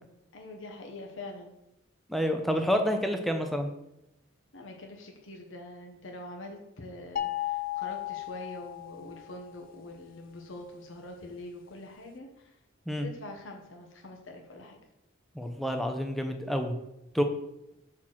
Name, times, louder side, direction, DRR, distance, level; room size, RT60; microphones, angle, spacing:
voice 1, 0.3-1.5 4.5-12.5 13.0-14.8, left 2 dB, 70° left, 1 dB, 1.0 m, -44 dB
voice 2, 2.1-3.7 12.9-13.1 15.4-16.7 17.1-17.2, equal, ahead, 4 dB, 0.6 m, -28 dB
sound 1, 7.2-9.4, left 13 dB, 45° left, 0.3 m, -34 dB
5.8 x 4.4 x 6.3 m, 0.89 s
head